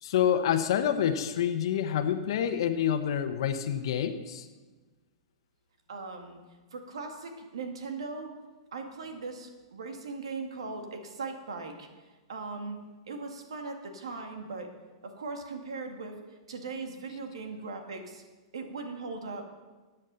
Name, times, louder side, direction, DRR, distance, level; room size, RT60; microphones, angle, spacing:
voice 1, 0.0-4.5, left 9 dB, 65° left, 7 dB, 1.1 m, -27 dB
voice 2, 5.9-6.4 6.7-8.4 8.7-11.9 12.3-12.8 13.1-14.7 15.0-16.1 16.5-18.2 18.5-19.4, right 4 dB, 80° right, 4 dB, 2.1 m, -39 dB
14.0 x 9.0 x 5.6 m, 1.3 s
hypercardioid pair, 120°, 3 cm